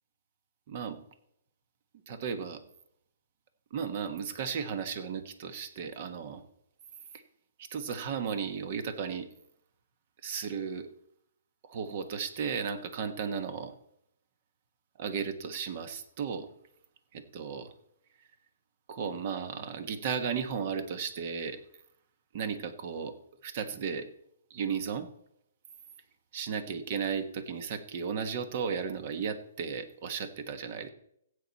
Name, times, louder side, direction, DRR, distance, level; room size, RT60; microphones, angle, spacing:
voice 1, 0.7-1.0 2.1-2.6 3.7-6.4 7.6-9.3 10.2-10.9 11.6-13.7 15.0-16.5 17.1-17.7 18.9-21.6 22.3-23.2 23.4-24.1 24.5-25.1 26.3-30.9, right 6 dB, 40° right, 10 dB, 1.3 m, -35 dB
15.0 x 8.6 x 4.2 m, 0.72 s
hypercardioid pair, 155°, 0 cm